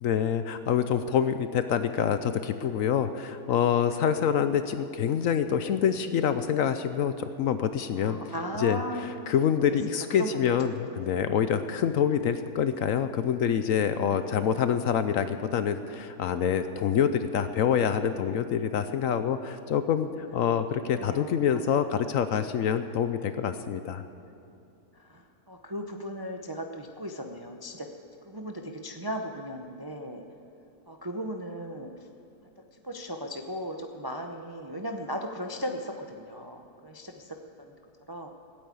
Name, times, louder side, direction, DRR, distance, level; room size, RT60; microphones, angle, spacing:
voice 1, 0.0-8.2 8.6-8.8 9.3-24.0, left 8 dB, 65° left, 10 dB, 0.9 m, -26 dB
voice 2, 7.9-9.1 9.9-10.8 11.5-11.7 14.2-14.6 20.9-21.9 24.9-27.9 28.2-30.2 30.9-31.9 32.7-37.7 38.1-38.3, equal, 30° right, 3 dB, 0.4 m, -37 dB
16.0 x 8.7 x 8.4 m, 2.7 s
omnidirectional pair, 1.7 m